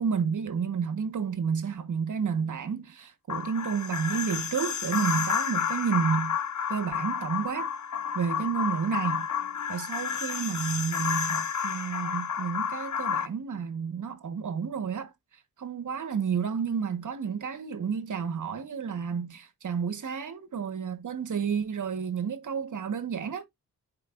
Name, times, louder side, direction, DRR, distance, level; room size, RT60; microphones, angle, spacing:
voice 1, 0.0-6.4 6.7-7.7 8.1-9.3 9.7-15.1 15.6-23.4, right 6 dB, 55° right, 1.3 m, -31 dB
sound 1, 3.3-13.3, left 7 dB, 50° left, 1.0 m, -31 dB
10.0 x 4.8 x 2.5 m
cardioid pair, 100°, 36 cm